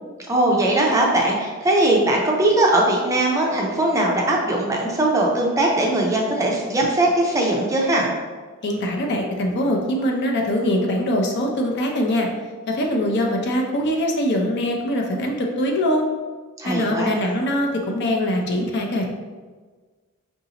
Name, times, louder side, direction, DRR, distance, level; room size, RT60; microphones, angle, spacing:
voice 1, 0.3-8.1 16.6-17.1, right 1 dB, 15° right, -1 dB, 0.5 m, -20 dB
voice 2, 8.6-12.3 12.7-16.1 16.6-19.1, left 1 dB, 50° left, 1 dB, 0.5 m, -22 dB
4.8 x 2.6 x 2.8 m, 1.4 s
head